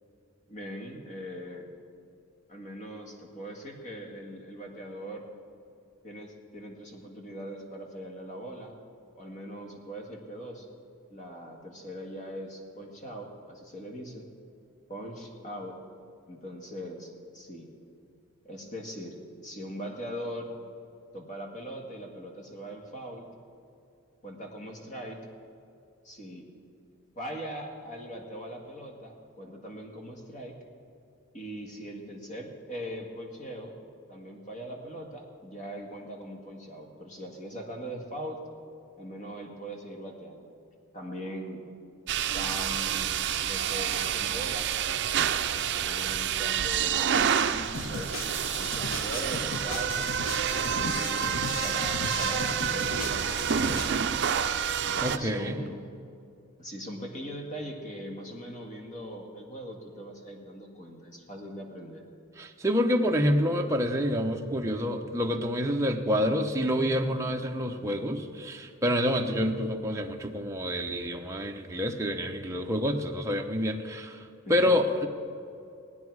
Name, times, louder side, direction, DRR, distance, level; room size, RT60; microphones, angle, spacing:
voice 1, 0.5-1.7 2.5-5.3 6.0-8.8 9.2-10.7 11.1-14.3 14.9-15.8 16.3-17.7 18.4-19.2 19.4-20.5 21.1-23.3 24.2-25.2 26.0-26.5 27.2-30.5 31.3-38.4 39.0-40.5 40.9-41.6 42.3-44.8 45.5-48.1 48.6-50.1 50.5-54.3 54.8-55.9 56.6-62.1 74.4-74.8, equal, 35° left, 1 dB, 1.8 m, -41 dB
sound 1, 42.1-55.2, right 8 dB, 55° right, 0.5 m, -28 dB
sound 2, 47.7-53.9, left 2 dB, 70° left, 1.2 m, -36 dB
voice 2, 55.0-55.6 62.4-74.2 74.5-75.1, equal, 15° right, 2 dB, 0.8 m, -27 dB
19.0 x 9.6 x 4.7 m, 2.5 s
head